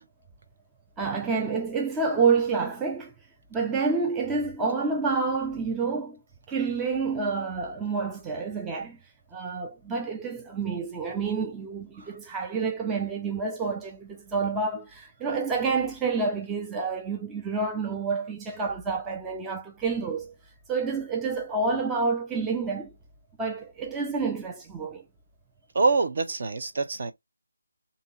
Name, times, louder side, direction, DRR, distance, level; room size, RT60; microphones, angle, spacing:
voice 1, 1.0-3.1 3.5-6.2 6.5-9.0 9.3-20.3 20.7-22.9 23.4-25.0, right 4 dB, 10° right, 0.4 m, -28 dB
voice 2, 25.8-27.1, right 3 dB, 50° right, 0.8 m, -25 dB
2.9 x 2.8 x 3.8 m
figure-of-eight pair, 165°, 0 cm